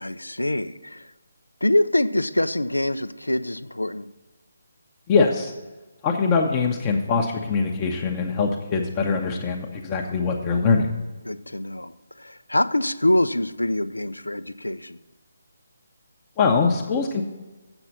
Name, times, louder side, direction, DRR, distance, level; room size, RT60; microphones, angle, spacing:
voice 1, 0.0-1.1 1.6-4.1 11.3-15.0, left 1 dB, 85° left, 13 dB, 0.4 m, -25 dB
voice 2, 5.1-5.5 6.0-10.9 16.4-17.2, left 4 dB, 25° left, 0 dB, 0.8 m, -22 dB
7.9 x 5.9 x 7.3 m, 1.1 s
figure-of-eight pair, 145°, 0 cm